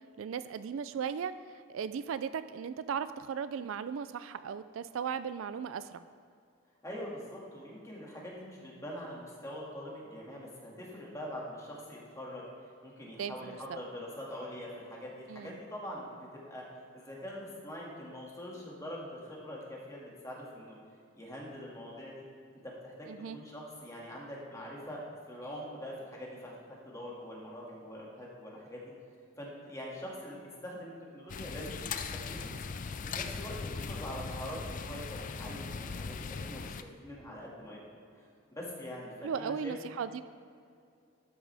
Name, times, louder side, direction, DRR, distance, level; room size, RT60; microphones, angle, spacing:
voice 1, 0.2-1.3 1.7-6.0 13.2-13.8 15.3-15.6 23.1-23.4 39.2-40.2, right 7 dB, 70° right, 13 dB, 0.3 m, -37 dB
voice 2, 6.8-12.5 12.8-16.7 16.9-20.8 21.1-22.2 22.6-26.5 26.8-28.8 29.4-32.5 33.1-37.8 38.2-38.3 38.5-39.7, equal, 15° left, -4 dB, 2.1 m, -43 dB
sound 1, 31.3-36.8, left 5 dB, 40° left, 0.4 m, -39 dB
12.5 x 8.7 x 3.4 m, 2.4 s
head